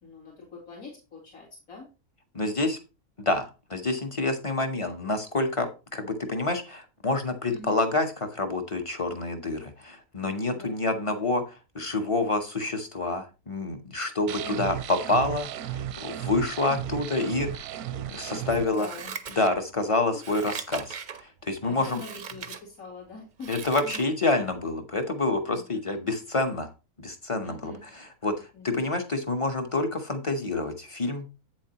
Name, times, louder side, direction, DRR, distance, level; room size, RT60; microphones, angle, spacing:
voice 1, 0.0-1.9 4.8-4.9 7.5-7.8 10.5-10.8 14.4-14.7 18.4-19.1 21.6-23.5 23.8-24.0 25.5-25.6 25.9-26.0 27.4-27.8 28.5-28.8, left 3 dB, 70° left, -5 dB, 3.0 m, -44 dB
voice 2, 2.3-2.8 3.2-17.7 18.1-18.9 19.4-21.0 21.2-22.0 23.5-26.7 27.0-28.3 28.6-31.3, left 2 dB, 30° left, 7 dB, 0.7 m, -28 dB
sound 1, 14.3-18.7, right 11 dB, 85° right, 1.1 m, -35 dB
Scissors, 18.7-19.8 20.2-21.2 21.8-22.6 23.1-24.1 24.5-24.6, right 6 dB, 55° right, 0.5 m, -39 dB
8.2 x 7.4 x 2.9 m, 0.30 s
omnidirectional pair, 1.6 m